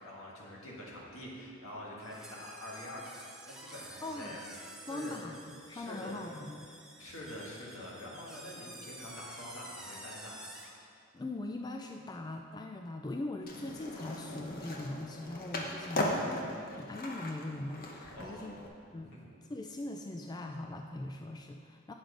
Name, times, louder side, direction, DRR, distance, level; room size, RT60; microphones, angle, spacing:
voice 1, 0.0-4.4 4.9-5.2 5.7-6.2 7.0-10.5 16.0-16.5 18.1-18.7 19.0-19.3, left 1 dB, 75° left, -4 dB, 1.9 m, -46 dB
sound 1, 2.0-10.8, right 1 dB, 5° right, 0.8 m, -50 dB
voice 2, 4.0-4.4 4.9-6.7 11.1-16.4 16.8-18.6 18.9-19.1 19.5-21.9, left 2 dB, 20° left, 4 dB, 0.3 m, -41 dB
Skateboard, 13.4-18.7, left 1 dB, 45° left, 0.9 m, -38 dB
9.0 x 6.4 x 5.1 m, 2.4 s
head